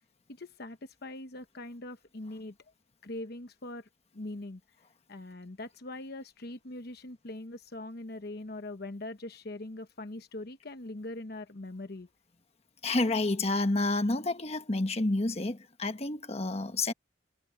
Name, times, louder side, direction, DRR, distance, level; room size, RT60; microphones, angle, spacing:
voice 1, 0.3-2.5 3.0-3.9 4.1-4.6 5.1-12.1, left 2 dB, 55° left, 1.1 m, -42 dB
voice 2, 12.8-16.9, left 2 dB, 35° left, 1.2 m, -29 dB
head